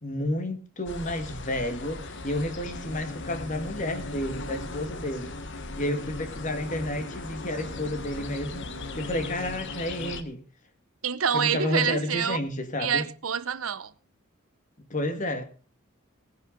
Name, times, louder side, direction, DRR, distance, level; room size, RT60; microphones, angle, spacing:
voice 1, 0.0-5.4 5.8-8.7 8.9-10.4 11.3-13.0 14.9-15.4, left 1 dB, 35° left, 2.0 m, -31 dB
sound 1, 0.8-10.2, left 2 dB, 60° left, 1.4 m, -37 dB
voice 2, 11.0-12.4 12.8-13.9, right 7 dB, 80° right, 0.8 m, -27 dB
18.5 x 10.5 x 3.9 m
head